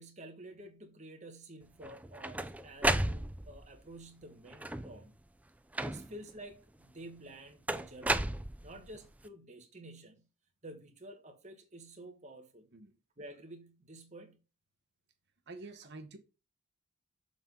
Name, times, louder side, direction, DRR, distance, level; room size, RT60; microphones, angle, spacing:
voice 1, 0.0-5.2 5.8-8.3 8.6-10.3 10.6-12.7 13.2-14.4, right 1 dB, 35° right, 1.5 m, -50 dB
sound 1, 1.8-3.7 4.5-5.1 5.8-6.3 7.7-9.0, right 1 dB, 5° right, 0.3 m, -33 dB
voice 2, 15.5-16.2, right 2 dB, 55° right, 1.1 m, -48 dB
7.1 x 4.0 x 5.4 m
head